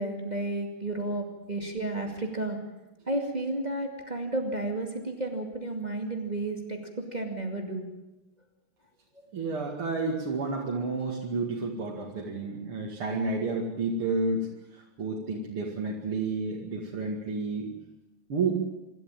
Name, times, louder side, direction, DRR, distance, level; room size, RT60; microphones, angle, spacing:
voice 1, 0.0-2.6 3.1-7.9, right 2 dB, 20° right, 2 dB, 2.3 m, -32 dB
voice 2, 9.3-14.5 14.7-17.7 18.3-18.6, right 3 dB, 75° right, -2 dB, 3.1 m, -30 dB
26.5 x 12.5 x 9.0 m, 0.98 s
omnidirectional pair, 2.4 m